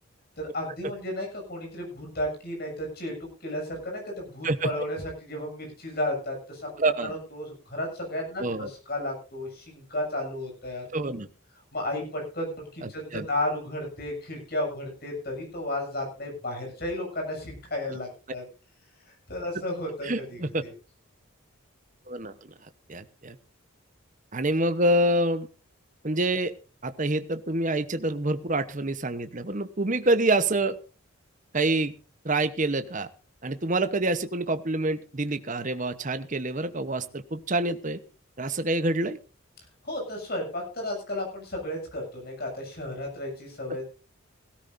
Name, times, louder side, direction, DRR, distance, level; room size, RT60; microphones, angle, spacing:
voice 1, 0.4-6.7 7.0-10.8 11.7-18.4 19.1-20.7 39.8-43.8, left 1 dB, 45° left, 1 dB, 7.4 m, -33 dB
voice 2, 6.8-7.1 8.4-8.7 10.9-11.3 12.8-13.3 20.0-20.6 22.1-22.5 22.9-23.4 24.3-25.5 26.0-26.5 26.8-30.8 31.5-31.9 32.2-33.1 33.4-38.0 38.4-39.2, right 2 dB, 35° right, 11 dB, 0.9 m, -27 dB
17.0 x 17.0 x 2.6 m, 0.33 s
head